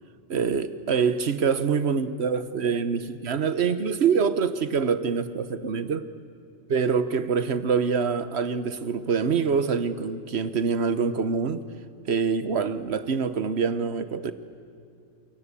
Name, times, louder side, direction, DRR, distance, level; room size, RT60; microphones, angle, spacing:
voice 1, 0.3-6.1 6.7-11.6 12.1-14.3, right 6 dB, 60° right, 13 dB, 1.3 m, -25 dB
28.5 x 23.0 x 8.4 m, 2.6 s
omnidirectional pair, 1.3 m